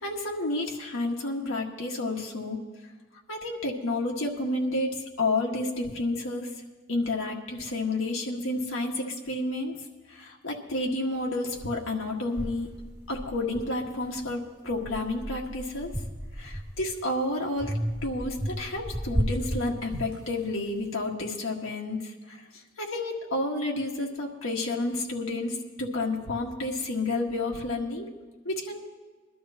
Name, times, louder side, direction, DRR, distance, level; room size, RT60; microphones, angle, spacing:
voice 1, 0.0-2.6 3.3-6.5 6.9-9.8 10.1-12.7 13.1-15.9 16.4-17.7 18.0-22.4 22.8-28.1 28.5-28.8, left 2 dB, 80° left, -1 dB, 1.8 m, -30 dB
sound 1, 11.6-11.7 12.4-14.2 14.7-17.0 17.6-20.4, equal, 15° right, 1.4 m, -33 dB
22.0 x 12.5 x 2.9 m, 1.3 s
head